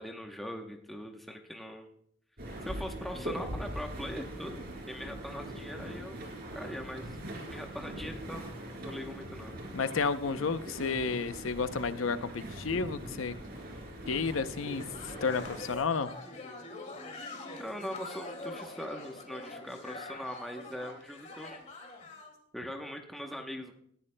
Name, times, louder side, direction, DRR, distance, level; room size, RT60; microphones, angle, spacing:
voice 1, 0.0-1.9 2.6-6.2 6.5-9.5 17.5-21.6 22.5-23.7, equal, ahead, 0.9 m, -41 dB
sound 1, 2.4-15.8, right 1 dB, 50° right, 3.6 m, -42 dB
voice 2, 9.7-13.4 14.1-16.1, left 5 dB, 85° left, 0.6 m, -32 dB
sound 2, 14.8-22.3, left 2 dB, 35° left, 2.2 m, -44 dB
19.0 x 13.5 x 2.2 m
head